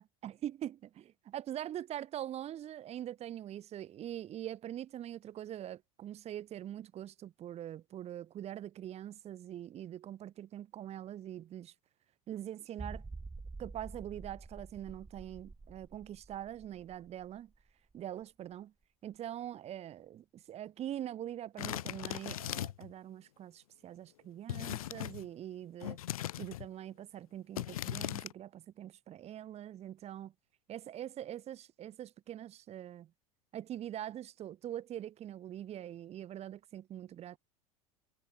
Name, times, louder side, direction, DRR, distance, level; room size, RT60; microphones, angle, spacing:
voice 1, 0.0-11.7 12.3-13.0 13.6-17.5 17.9-18.7 19.0-26.0 26.4-30.3 30.7-33.1 33.5-37.4, right 11 dB, 35° right, 1.3 m, -43 dB
sound 1, 12.8-18.2 18.5-18.6 19.1-19.2, right 3 dB, 15° right, 1.8 m, -48 dB
sound 2, 21.6-22.9 24.5-25.3 25.8-26.7 27.6-28.3, left 13 dB, 75° left, 0.6 m, -39 dB
figure-of-eight pair, 80°, 18 cm